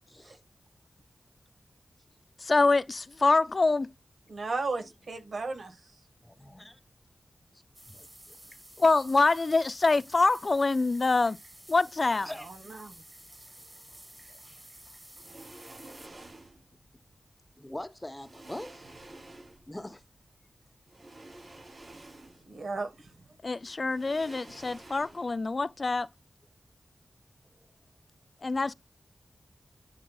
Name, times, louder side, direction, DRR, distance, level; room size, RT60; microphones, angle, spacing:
voice 1, 0.1-0.4 5.3-5.4 6.2-6.8 7.5-8.6 12.2-12.7 14.3-14.4 15.8-15.9 16.2-16.3 17.6-18.9 19.7-20.0 25.1-25.2, left 1 dB, 15° left, 0.9 m, -44 dB
voice 2, 2.4-3.9 8.8-11.4 11.7-12.3 23.4-26.1 28.4-28.7, left 3 dB, 50° left, 0.4 m, -25 dB
voice 3, 4.3-5.9 12.1-13.0 22.5-23.1, right 3 dB, 75° right, 1.6 m, -36 dB
sound 1, 7.7-16.1, right 1 dB, 20° right, 2.0 m, -52 dB
sound 2, 15.1-16.7 17.7-17.8 18.2-19.8 20.9-22.6 22.9-23.0 23.8-25.5 25.7-25.9, right 2 dB, 50° right, 3.6 m, -50 dB
10.5 x 3.9 x 2.3 m
cardioid pair, 55°, 0 cm